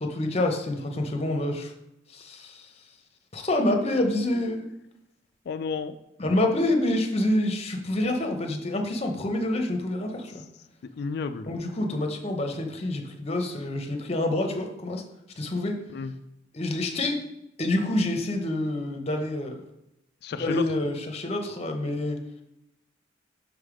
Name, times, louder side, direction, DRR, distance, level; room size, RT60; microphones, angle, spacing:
voice 1, 0.0-1.7 2.1-2.7 3.3-4.7 6.2-10.4 11.5-15.0 15.4-15.8 16.5-17.2 17.6-19.6 20.3-22.2, left 1 dB, 35° left, 4 dB, 0.8 m, -27 dB
voice 2, 5.5-5.9 11.0-11.5 15.9-16.1 20.2-20.6, left 5 dB, 60° left, 8 dB, 0.3 m, -31 dB
6.3 x 3.4 x 4.9 m, 0.86 s
head